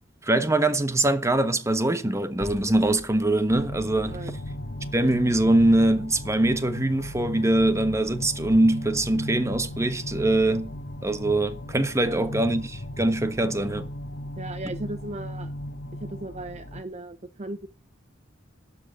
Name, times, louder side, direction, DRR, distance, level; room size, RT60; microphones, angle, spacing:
voice 1, 0.2-4.2 4.9-10.7 11.0-13.9, right 1 dB, 15° right, 1.3 m, -23 dB
sound 1, 2.4-4.9, equal, 10° left, 4.9 m, -44 dB
sound 2, 3.5-16.8, left 1 dB, 60° left, 1.6 m, -37 dB
voice 2, 14.4-15.5 16.0-17.7, right 2 dB, 35° right, 0.8 m, -37 dB
12.0 x 7.6 x 9.2 m
head